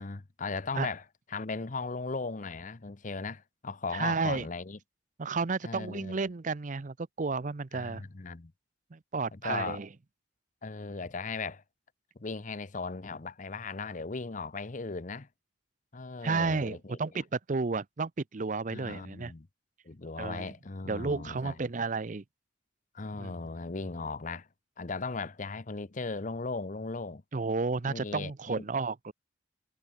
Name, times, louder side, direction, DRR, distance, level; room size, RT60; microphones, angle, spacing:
voice 1, 0.0-4.8 5.6-6.1 7.7-8.5 9.3-9.8 10.6-11.6 12.2-15.3 15.9-17.0 18.7-19.5 19.8-21.7 22.9-24.5 24.8-27.2 27.9-28.6, left 4 dB, 40° left, 0.8 m, -37 dB
voice 2, 3.9-4.5 5.2-8.0 8.9-9.9 16.2-19.3 20.2-20.5 20.8-22.2 23.2-23.3 27.3-29.1, right 4 dB, 40° right, 0.6 m, -32 dB
head